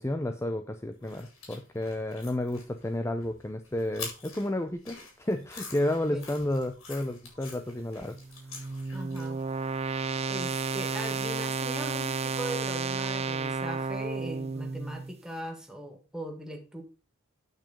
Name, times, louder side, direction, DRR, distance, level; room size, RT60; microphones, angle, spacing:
voice 1, 0.0-8.2, left 1 dB, 15° left, 7 dB, 0.6 m, -31 dB
sound 1, 1.0-9.5, left 4 dB, 90° left, 4.7 m, -46 dB
sound 2, 8.0-15.1, right 4 dB, 30° right, 0.5 m, -32 dB
voice 2, 8.9-9.4 10.3-16.8, equal, 5° right, 3 dB, 1.7 m, -40 dB
9.3 x 6.0 x 5.0 m, 0.32 s
head